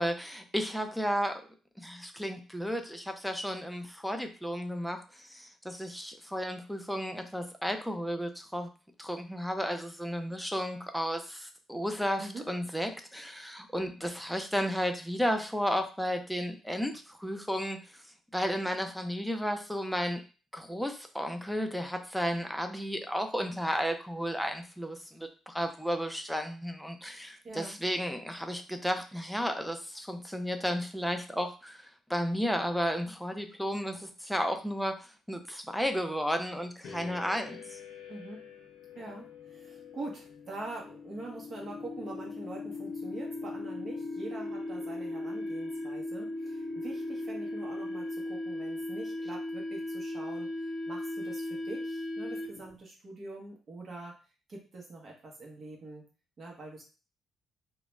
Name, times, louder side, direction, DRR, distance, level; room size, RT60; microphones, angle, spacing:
voice 1, 0.0-1.4 1.8-8.7 9.0-17.8 18.3-20.2 20.5-31.8 32.1-37.8, equal, ahead, 5 dB, 0.4 m, -33 dB
voice 2, 27.4-27.8 38.1-38.4 39.0-50.5 50.9-54.2 54.5-56.1 56.4-56.8, right 2 dB, 45° right, -1 dB, 0.8 m, -44 dB
sound 1, 36.8-52.8, left 2 dB, 80° left, 0.6 m, -38 dB
2.3 x 2.1 x 3.0 m, 0.34 s
cardioid pair, 90°, 0 cm